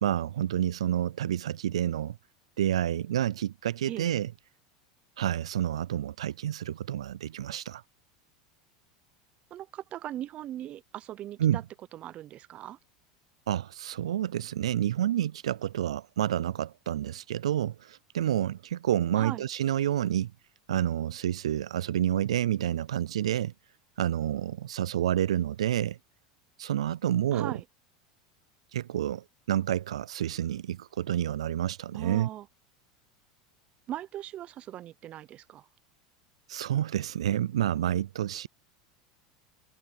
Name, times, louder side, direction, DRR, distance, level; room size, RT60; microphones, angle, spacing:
voice 1, 0.0-2.2 2.6-4.3 5.2-7.8 11.4-11.6 13.5-20.3 20.7-23.5 24.0-26.0 26.6-27.5 28.7-32.3 36.5-38.5, right 11 dB, 90° right, 0.3 m, -29 dB
voice 2, 9.5-11.6 11.9-12.8 19.2-19.5 27.3-27.6 31.9-32.5 33.9-35.7, right 12 dB, 45° right, 0.8 m, -39 dB
hypercardioid pair, 100°, 3 cm